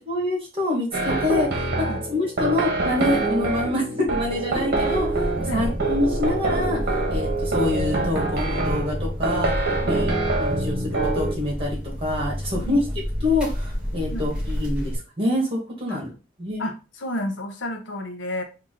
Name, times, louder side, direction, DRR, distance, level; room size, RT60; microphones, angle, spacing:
voice 1, 0.1-12.8 13.2-16.1 16.4-16.7, left 2 dB, 30° right, -1 dB, 1.8 m, -26 dB
sound 1, 0.9-11.3, right 2 dB, 55° right, 1.1 m, -25 dB
sound 2, 4.9-15.0, equal, 5° right, 1.9 m, -30 dB
voice 2, 16.6-18.4, left 1 dB, 70° left, 5 dB, 0.8 m, -31 dB
3.8 x 2.8 x 3.8 m, 0.31 s
head